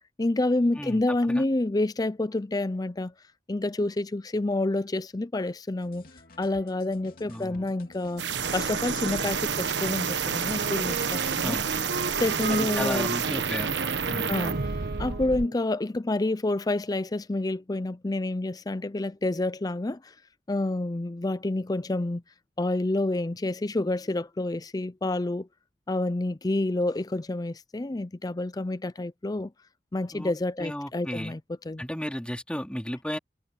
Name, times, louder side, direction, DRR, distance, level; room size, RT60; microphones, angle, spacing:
voice 1, 0.2-3.1 3.5-6.0 6.4-8.2 8.5-11.6 12.1-13.1 14.3-14.6 15.0-20.1 20.5-22.2 22.6-25.5 25.9-29.5 29.9-31.4 31.7-31.8, left 2 dB, 20° left, 0.5 m, -28 dB
sound 1, 5.8-13.2, left 2 dB, 55° left, 3.0 m, -51 dB
voice 2, 7.3-7.7 11.4-11.7 12.5-13.7 14.1-14.3 30.1-30.3 30.6-31.3 31.8-33.2, equal, 5° left, 3.2 m, -34 dB
sound 2, 8.2-15.5, right 6 dB, 90° right, 1.2 m, -29 dB
Wind instrument woodwind instrument, 10.6-15.6, right 3 dB, 60° right, 1.1 m, -36 dB
head